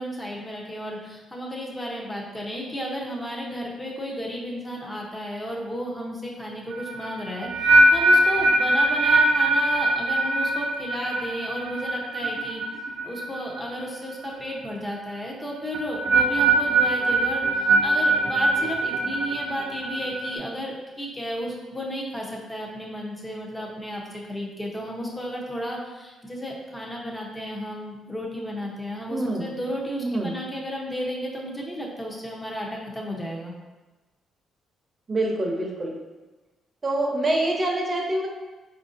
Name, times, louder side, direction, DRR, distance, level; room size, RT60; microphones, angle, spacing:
voice 1, 0.0-12.6 13.0-33.5, equal, 15° left, -2 dB, 0.7 m, -33 dB
sound 1, 6.7-13.8 14.1-14.5 15.7-20.3, right 2 dB, 70° right, 0.5 m, -22 dB
voice 2, 29.1-29.5 30.0-30.4 35.1-36.0 36.8-38.3, right 1 dB, 30° right, -1 dB, 0.7 m, -25 dB
4.7 x 2.6 x 2.5 m, 1.2 s
cardioid pair, 90°, 0 cm